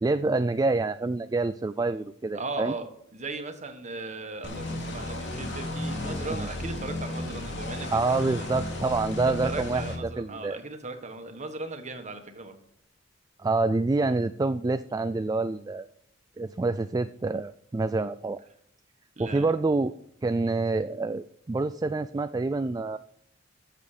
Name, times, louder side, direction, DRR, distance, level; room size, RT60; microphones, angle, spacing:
voice 1, 0.0-2.7 6.3-6.5 7.9-10.6 13.4-15.9 16.4-18.4 19.2-19.9 20.2-23.0, right 3 dB, 20° right, 11 dB, 0.3 m, -27 dB
voice 2, 2.3-2.9 3.1-8.5 9.4-12.6 19.2-19.5, right 3 dB, 35° right, 6 dB, 1.5 m, -38 dB
sound 1, 4.4-10.0, left 1 dB, 65° left, 2.6 m, -34 dB
13.5 x 7.6 x 5.0 m, 0.72 s
head